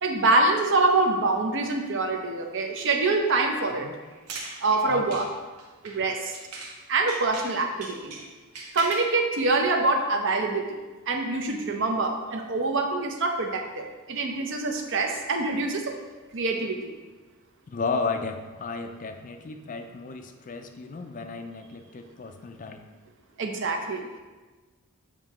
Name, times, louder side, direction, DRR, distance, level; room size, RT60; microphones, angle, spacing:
voice 1, 0.0-3.9 4.6-5.3 5.8-6.4 6.9-8.2 8.7-10.6 11.1-16.0 16.3-16.9 23.4-24.0, right 3 dB, 55° right, 4 dB, 0.7 m, -25 dB
sound 1, 4.0-6.8 7.1-9.2, right 3 dB, 85° right, 1.0 m, -40 dB
voice 2, 4.8-5.2 17.7-22.9, left 4 dB, 35° left, 6 dB, 0.4 m, -34 dB
7.5 x 4.5 x 3.0 m, 1.3 s
head